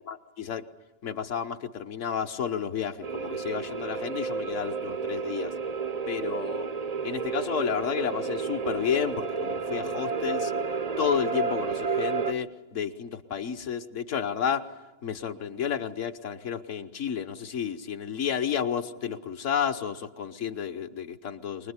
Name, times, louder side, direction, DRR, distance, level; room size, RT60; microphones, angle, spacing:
voice 1, 0.1-0.6 1.0-5.5 6.1-6.7 7.0-10.5 11.0-14.7 15.0-21.7, left 8 dB, 50° left, 10 dB, 1.1 m, -31 dB
sound 1, 3.0-12.3, right 5 dB, 45° right, 0.5 m, -31 dB
24.0 x 21.0 x 9.6 m, 1.2 s
omnidirectional pair, 1.9 m